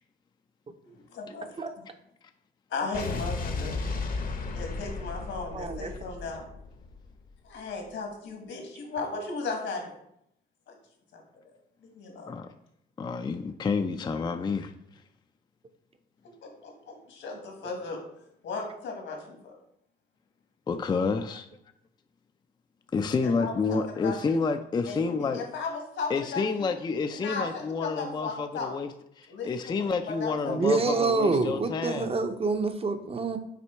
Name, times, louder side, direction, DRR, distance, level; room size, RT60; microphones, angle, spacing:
voice 1, 0.8-1.7 2.7-3.8 4.5-6.4 7.4-10.0 10.7-10.8 11.1-11.2 11.8-12.3 16.4-18.0 18.4-19.6 23.2-24.4 24.8-26.7 27.1-28.7 29.3-29.7 30.1-30.8, left 4 dB, 75° left, 2 dB, 1.6 m, -36 dB
Explosion, 2.9-7.3, left 3 dB, 45° left, 0.8 m, -34 dB
voice 2, 5.5-5.9 30.5-33.4, right 3 dB, 30° right, 8 dB, 0.6 m, -27 dB
voice 3, 13.0-14.7 20.7-21.5 22.9-25.4 26.1-32.2, left 4 dB, 20° left, 8 dB, 0.4 m, -29 dB
5.9 x 3.5 x 4.5 m, 0.76 s
cardioid pair, 90°, 20 cm